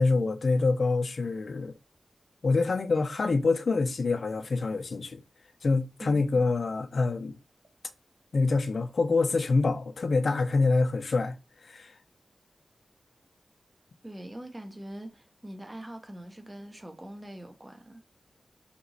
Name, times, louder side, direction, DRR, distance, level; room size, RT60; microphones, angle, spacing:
voice 1, 0.0-1.7 2.4-5.2 5.6-7.4 8.3-11.4 11.6-11.9, left 3 dB, 65° left, 0.4 m, -26 dB
voice 2, 6.0-6.4 14.0-18.0, right 1 dB, 20° right, 0.5 m, -43 dB
3.5 x 3.0 x 2.6 m
wide cardioid pair, 95°, 0 cm